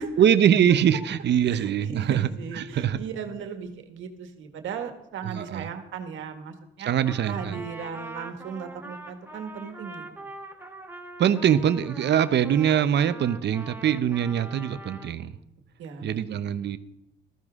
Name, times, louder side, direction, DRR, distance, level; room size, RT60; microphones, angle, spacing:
voice 1, 0.2-2.3 2.6-3.0 5.3-5.7 6.9-7.6 11.2-15.4 16.0-16.8, right 9 dB, 60° right, 13 dB, 0.8 m, -23 dB
voice 2, 1.4-6.9 7.2-10.1 15.8-16.4, right 6 dB, 80° right, 6 dB, 1.8 m, -37 dB
Trumpet, 7.0-15.2, right 2 dB, 10° right, 1.6 m, -43 dB
14.5 x 14.0 x 3.7 m, 0.83 s
cardioid pair, 90°, 20 cm